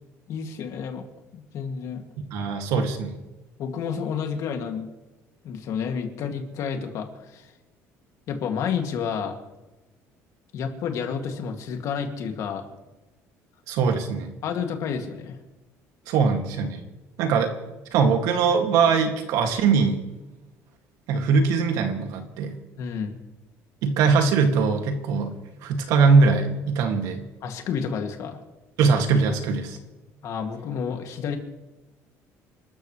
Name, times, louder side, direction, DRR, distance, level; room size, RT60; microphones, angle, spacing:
voice 1, 0.3-1.1 1.3-2.0 3.6-4.9 5.4-7.5 8.3-9.4 10.5-12.6 14.4-15.4 22.8-23.2 27.4-28.4 30.2-31.4, left 6 dB, 60° left, 4 dB, 2.4 m, -30 dB
voice 2, 2.3-3.2 13.7-14.3 16.1-16.8 17.2-17.6 17.9-20.0 21.1-22.6 23.8-25.3 25.6-27.2 28.8-29.8, right 5 dB, 85° right, 4 dB, 2.3 m, -21 dB
28.5 x 13.0 x 3.3 m, 1.1 s
cardioid pair, 130°, 6 cm